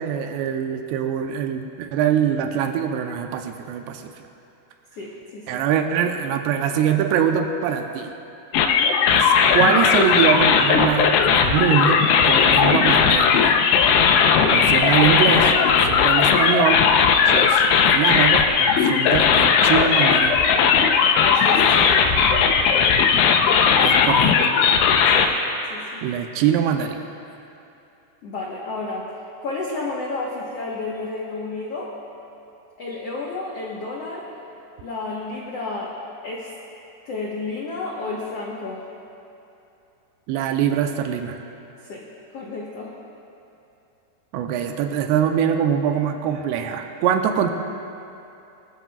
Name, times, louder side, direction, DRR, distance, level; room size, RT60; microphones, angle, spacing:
voice 1, 0.0-4.1 5.5-8.1 9.1-13.6 14.5-20.4 23.8-24.3 26.0-27.0 40.3-41.4 44.3-47.5, right 8 dB, 90° right, 5 dB, 2.9 m, -23 dB
voice 2, 4.9-5.6 8.7-9.0 21.1-22.5 25.1-25.3 25.7-26.0 28.2-29.1 29.4-31.9 32.8-34.2 34.8-35.9 36.2-36.5 37.0-38.8 41.8-42.1 42.3-42.9, left 3 dB, 70° left, -4 dB, 1.5 m, -31 dB
sound 1, 8.5-25.3, left 6 dB, 85° left, 3.0 m, -17 dB
24.5 x 13.5 x 2.4 m, 2.8 s
omnidirectional pair, 4.8 m